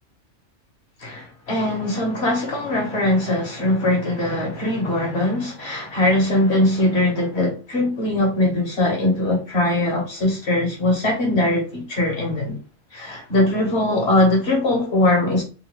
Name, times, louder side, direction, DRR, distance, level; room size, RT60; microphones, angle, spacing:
voice 1, 1.0-12.6 12.9-15.4, left 1 dB, 60° left, 1.6 m, -21 dB
3.6 x 2.6 x 3.0 m
omnidirectional pair, 1.2 m